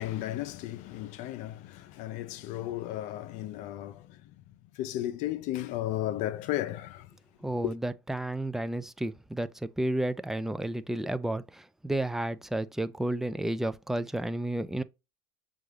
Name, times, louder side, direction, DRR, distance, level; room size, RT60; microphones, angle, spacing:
voice 1, 0.0-4.2 4.8-7.1, left 14 dB, 55° left, 0.6 m, -34 dB
voice 2, 7.4-14.8, right 1 dB, 5° right, 0.3 m, -32 dB
6.7 x 2.5 x 3.2 m
hypercardioid pair, 100°, 15 cm